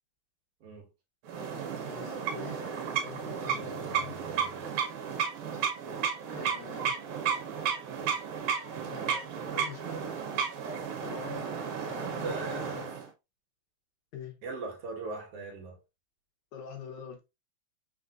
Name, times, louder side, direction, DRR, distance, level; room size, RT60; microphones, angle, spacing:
sound 1, 1.3-13.1, right 7 dB, 75° right, 2.2 m, -33 dB
voice 1, 1.8-4.2 6.3-7.0 8.8-10.3 11.0-12.9 14.1-14.4 16.5-17.2, left 7 dB, 80° left, 2.5 m, -45 dB
voice 2, 3.5-4.7 9.8-10.0 12.2-12.9 14.4-15.8, right 3 dB, 60° right, 2.0 m, -40 dB
5.3 x 3.8 x 2.4 m
omnidirectional pair, 3.4 m